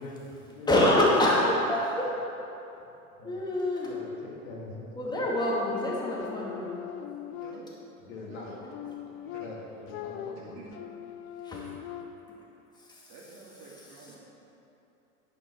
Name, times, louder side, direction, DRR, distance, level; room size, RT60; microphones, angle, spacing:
voice 1, 0.0-0.7 2.0-2.2 2.8-2.9 3.2-3.4 3.9-5.3 8.0-8.5 8.8-8.9 9.4-10.6, left 2 dB, 65° left, -3 dB, 2.6 m, -43 dB
voice 2, 0.7-2.1 3.2-3.9 5.0-6.7 11.4-11.9 12.8-13.1, left 1 dB, 10° left, -4 dB, 2.2 m, -26 dB
sound 1, 5.5-8.0 8.5-12.4, left 10 dB, 30° left, 0.4 m, -41 dB
voice 3, 7.2-7.8 8.2-8.7 9.2-9.5 10.3-10.8 13.1-14.2, right 4 dB, 40° right, -4 dB, 2.5 m, -49 dB
10.5 x 8.2 x 4.4 m, 2.9 s
hypercardioid pair, 105°, 43 cm